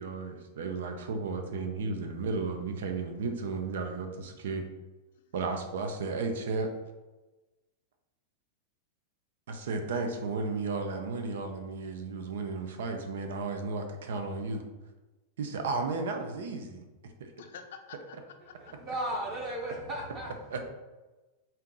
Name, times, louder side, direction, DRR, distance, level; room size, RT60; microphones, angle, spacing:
voice 1, 0.0-4.6 5.3-6.7 9.5-14.6 15.4-16.8 17.2-17.3 20.5-20.6, right 4 dB, 80° right, 5 dB, 0.6 m, -34 dB
voice 2, 17.4-18.7 20.6-20.7, left 7 dB, 75° left, 5 dB, 0.6 m, -48 dB
voice 3, 18.6-20.3, right 1 dB, 25° right, -2 dB, 0.8 m, -35 dB
4.2 x 2.5 x 3.8 m, 1.1 s
supercardioid pair, 160°, 0 cm